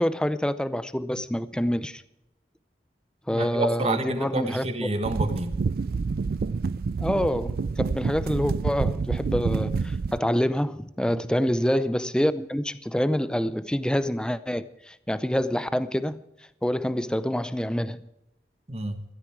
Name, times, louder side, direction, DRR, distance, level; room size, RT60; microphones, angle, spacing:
voice 1, 0.0-2.0 3.3-4.6 7.0-16.2 16.6-18.0, equal, 5° left, 0.5 m, -26 dB
voice 2, 3.3-5.5 11.1-11.2 18.7-19.0, right 2 dB, 35° right, 1.4 m, -29 dB
sound 1, 5.0-10.2, right 4 dB, 55° right, 0.4 m, -28 dB
14.5 x 12.5 x 4.6 m
head